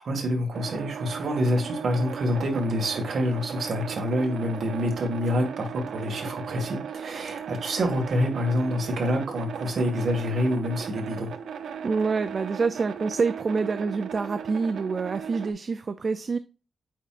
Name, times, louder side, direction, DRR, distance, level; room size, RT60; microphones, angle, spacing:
voice 1, 0.0-11.3, equal, 55° right, 1.9 m, -27 dB
sound 1, 0.5-15.5, right 7 dB, 90° right, 0.5 m, -37 dB
voice 2, 11.8-16.4, right 4 dB, 40° right, 0.3 m, -27 dB
8.5 x 4.5 x 2.5 m
wide cardioid pair, 150°, 0 cm